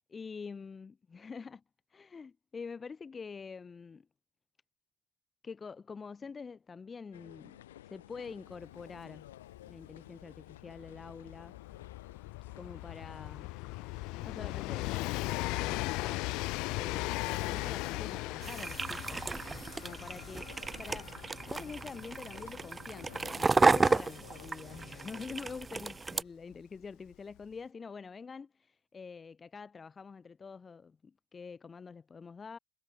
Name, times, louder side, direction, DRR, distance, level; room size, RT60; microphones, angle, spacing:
voice 1, 0.1-1.6 1.9-4.1 5.4-9.3 9.7-11.5 12.5-13.5 14.2-16.2 16.8-19.3 19.8-32.6, left 5 dB, 30° left, 1.3 m, -46 dB
sound 1, 7.1-25.4, left 13 dB, 90° left, 1.8 m, -54 dB
Train, 8.6-8.7 8.9-25.5 26.5-26.6, left 23 dB, 70° left, 0.6 m, -38 dB
sound 2, 18.4-26.2, right 3 dB, 20° right, 0.3 m, -32 dB
hypercardioid pair, 75°, 0 cm